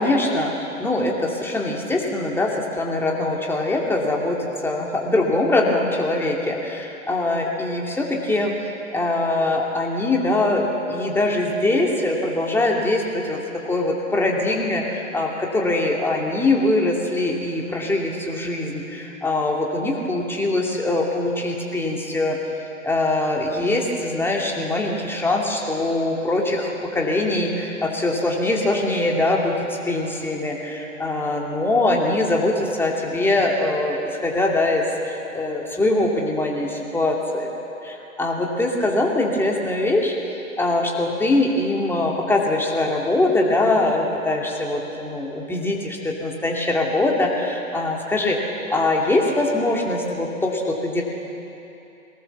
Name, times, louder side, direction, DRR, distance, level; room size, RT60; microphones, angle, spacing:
voice 1, 0.0-8.5 8.9-22.4 22.8-37.5 37.8-40.1 40.6-51.0, left 2 dB, 5° left, -1 dB, 2.5 m, -22 dB
22.0 x 18.5 x 7.1 m, 2.9 s
hypercardioid pair, 125°, 41 cm